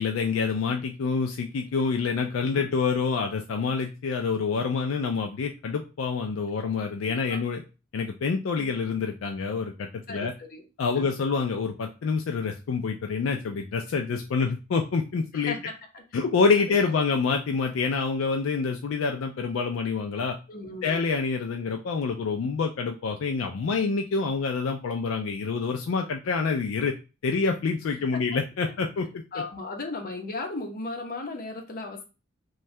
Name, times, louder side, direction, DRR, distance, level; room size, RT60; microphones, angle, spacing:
voice 1, 0.0-7.6 7.9-10.3 10.8-15.6 16.1-20.4 20.8-26.9 27.2-29.2, left 5 dB, 75° left, 3 dB, 0.4 m, -27 dB
voice 2, 7.1-7.4 8.6-8.8 10.1-10.6 10.9-11.1 15.3-16.0 16.7-16.8 20.5-21.0 28.1-28.2 28.7-28.8 29.3-32.0, left 3 dB, 45° left, 3 dB, 0.7 m, -36 dB
2.7 x 2.3 x 3.1 m, 0.30 s
head